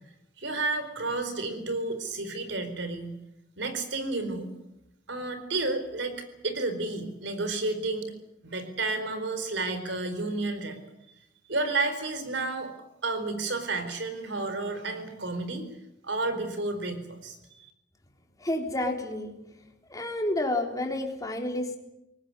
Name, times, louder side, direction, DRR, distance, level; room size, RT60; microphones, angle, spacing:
voice 1, 0.4-3.2 3.6-4.5 5.1-8.1 8.4-10.8 11.5-12.7 13.0-15.7 16.0-17.4 17.6-17.7, right 3 dB, 70° right, 9 dB, 4.4 m, -31 dB
voice 2, 18.4-19.3 19.9-21.8, left 1 dB, 20° left, 2 dB, 3.8 m, -30 dB
22.5 x 19.0 x 9.7 m, 0.87 s
head